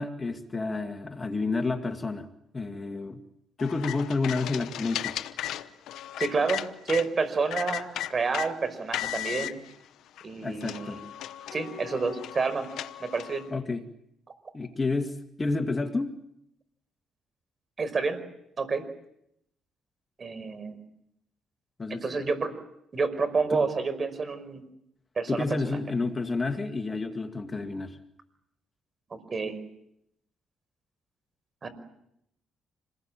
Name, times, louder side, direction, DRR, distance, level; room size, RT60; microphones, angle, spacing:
voice 1, 0.0-2.3 2.5-3.2 3.6-5.2 10.4-11.0 13.5-13.8 14.5-16.1 21.8-22.3 23.5-23.7 25.3-28.0, left 3 dB, 25° left, 6 dB, 2.1 m, -30 dB
sound 1, 3.6-7.1 7.5-8.5 8.9-9.5 10.2-10.3 10.6-13.4, left 12 dB, 80° left, 1.0 m, -35 dB
voice 2, 6.2-9.6 10.2-11.0 11.5-12.7 13.0-13.4 17.8-18.2 18.6-18.8 20.2-20.8 21.9-22.5 22.9-24.6 25.2-25.5 29.1-29.6 31.6-31.7, right 4 dB, 40° right, 12 dB, 5.3 m, -29 dB
27.5 x 20.5 x 8.9 m, 0.78 s
cardioid pair, 90°, 0 cm